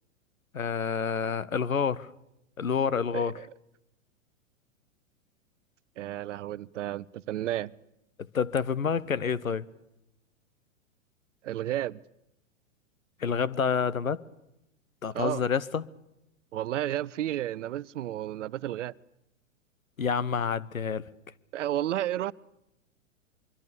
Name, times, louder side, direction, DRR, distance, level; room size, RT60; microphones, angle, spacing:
voice 1, 0.5-2.1 2.6-3.3 8.3-9.7 13.2-14.2 15.0-15.8 20.0-21.1, left 6 dB, 90° left, 1.1 m, -28 dB
voice 2, 3.1-3.5 6.0-7.7 11.4-12.0 15.1-15.4 16.5-18.9 21.5-22.3, right 13 dB, 65° right, 0.8 m, -32 dB
24.0 x 24.0 x 6.9 m
hypercardioid pair, 110°, 40 cm